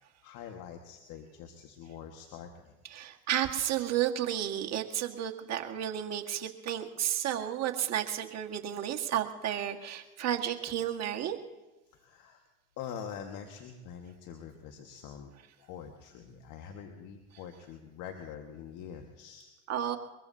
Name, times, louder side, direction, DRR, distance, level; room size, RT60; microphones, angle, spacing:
voice 1, 0.0-2.8 11.9-12.4 12.8-15.3 15.6-19.5, left 8 dB, 60° left, 3 dB, 1.7 m, -45 dB
voice 2, 2.8-11.4 19.7-20.0, right 10 dB, 50° right, 3 dB, 1.8 m, -32 dB
22.5 x 22.5 x 2.8 m, 1.1 s
hypercardioid pair, 80°, 34 cm